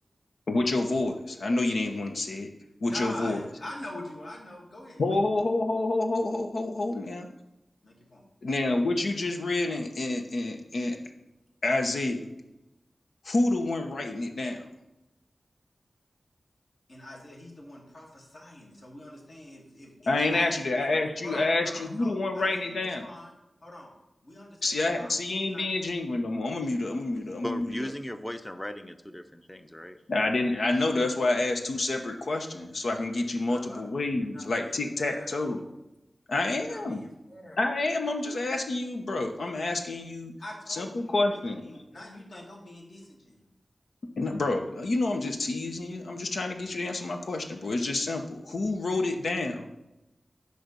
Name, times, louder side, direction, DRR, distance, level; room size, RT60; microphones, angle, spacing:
voice 1, 0.5-2.5 2.8-3.4 5.0-7.3 8.4-11.0 11.6-12.3 13.2-14.7 20.1-23.1 24.6-27.9 30.1-35.6 36.3-37.0 37.6-40.3 40.7-41.7 44.2-49.7, left 2 dB, 90° left, 4 dB, 1.0 m, -28 dB
voice 2, 2.8-5.2 7.8-8.2 16.9-20.6 21.2-23.3 23.6-23.9 24.2-25.7 33.5-33.8 34.4-35.6 36.5-37.6 40.4-43.5, left 1 dB, 60° left, -3 dB, 2.5 m, -44 dB
voice 3, 27.4-30.0, left 1 dB, 10° left, 9 dB, 0.6 m, -37 dB
10.0 x 3.4 x 6.8 m, 0.96 s
wide cardioid pair, 80°, 0 cm